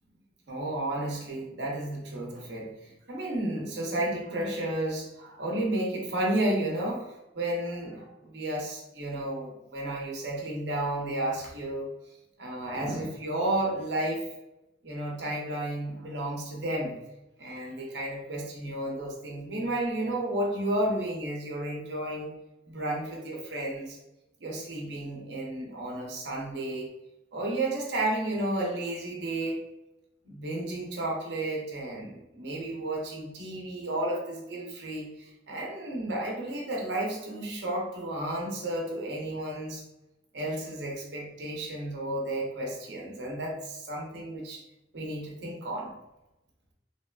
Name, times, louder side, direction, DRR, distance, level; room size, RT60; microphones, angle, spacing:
voice 1, 0.5-11.9 12.4-14.2 14.8-16.9 17.4-22.3 22.7-24.0 24.4-26.9 27.3-29.6 30.2-39.8 40.3-44.6 44.9-45.9, right 1 dB, 70° right, -2 dB, 0.7 m, -32 dB
3.0 x 2.3 x 2.2 m, 0.94 s
head